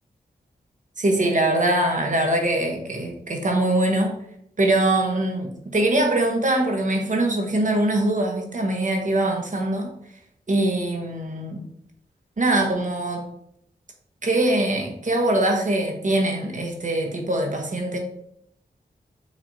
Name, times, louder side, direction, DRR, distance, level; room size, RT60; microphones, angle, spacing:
voice 1, 1.0-4.1 4.6-9.9 10.5-11.6 12.4-13.3 14.2-18.0, right 1 dB, 45° right, 3 dB, 1.1 m, -22 dB
5.9 x 3.2 x 2.8 m, 0.72 s
cardioid pair, 50°, 17 cm